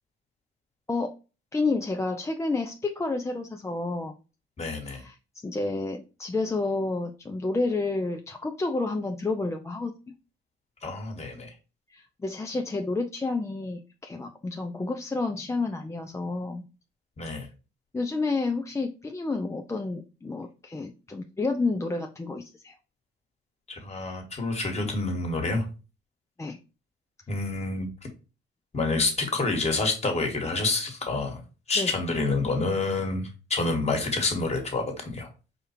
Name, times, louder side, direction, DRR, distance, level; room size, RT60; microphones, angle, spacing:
voice 1, 1.5-4.2 4.9-5.1 5.4-10.1 11.9-16.6 17.9-22.7 26.4-26.6 31.8-31.9, left 3 dB, 15° left, 4 dB, 0.4 m, -30 dB
voice 2, 4.6-5.0 10.8-11.5 17.2-17.5 23.7-25.6 27.3-27.9 28.7-31.4 31.7-35.3, left 3 dB, 35° left, 2 dB, 1.6 m, -28 dB
5.0 x 2.3 x 4.3 m, 0.33 s
cardioid pair, 90°, 20 cm